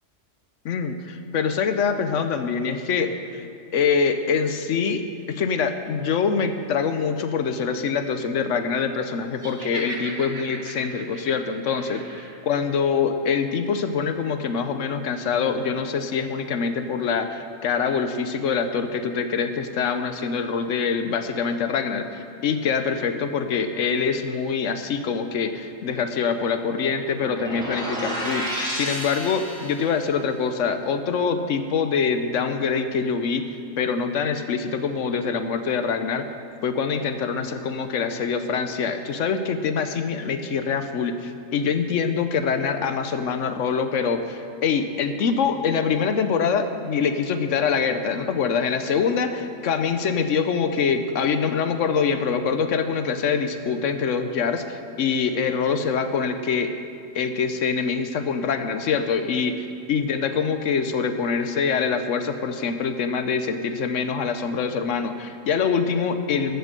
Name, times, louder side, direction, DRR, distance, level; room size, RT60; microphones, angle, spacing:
voice 1, 0.6-3.4 3.7-33.4 33.8-36.3 36.6-56.7 57.1-66.6, left 6 dB, 75° left, 8 dB, 1.1 m, -24 dB
Laughter, 9.4-12.4, right 2 dB, 65° right, 1.8 m, -38 dB
sound 1, 27.2-30.0, equal, 5° left, 2.5 m, -31 dB
14.0 x 6.8 x 6.7 m, 2.6 s
omnidirectional pair, 1.3 m